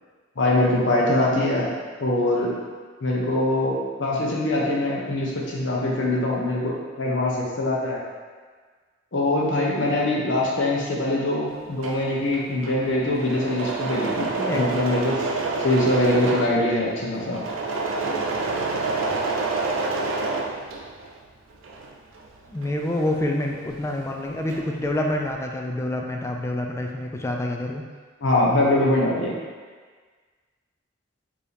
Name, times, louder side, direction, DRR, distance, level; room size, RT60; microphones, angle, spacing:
voice 1, 0.4-1.7 2.0-2.6 3.0-8.0 9.1-15.2 15.6-17.4 28.2-29.3, left 1 dB, 70° left, -3 dB, 0.8 m, -23 dB
Engine / Mechanisms, 11.6-21.2 21.5-23.9 24.1-24.8, right 3 dB, 90° right, 0.5 m, -28 dB
voice 2, 22.5-27.8, left 1 dB, 15° left, 1 dB, 0.3 m, -27 dB
4.7 x 2.8 x 3.3 m, 1.5 s
head